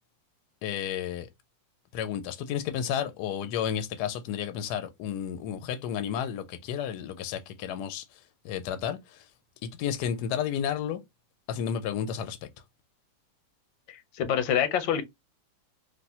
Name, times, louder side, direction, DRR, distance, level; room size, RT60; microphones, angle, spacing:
voice 1, 0.6-1.3 1.9-8.0 8.4-9.0 9.6-11.0 11.5-12.4, left 9 dB, 75° left, 1.0 m, -32 dB
voice 2, 13.9-15.0, left 9 dB, 90° left, 1.4 m, -26 dB
3.3 x 2.5 x 2.7 m
omnidirectional pair, 2.1 m